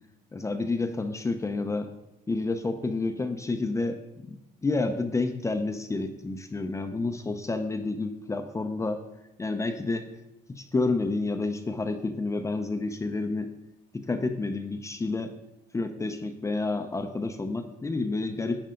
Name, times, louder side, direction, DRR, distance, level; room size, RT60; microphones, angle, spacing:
voice 1, 0.3-1.9 2.3-4.4 4.6-9.0 9.4-10.1 10.5-13.5 13.9-15.4 15.7-18.6, left 3 dB, 15° left, 6 dB, 0.7 m, -29 dB
10.5 x 8.8 x 3.8 m, 0.90 s
cardioid pair, 110°, 17 cm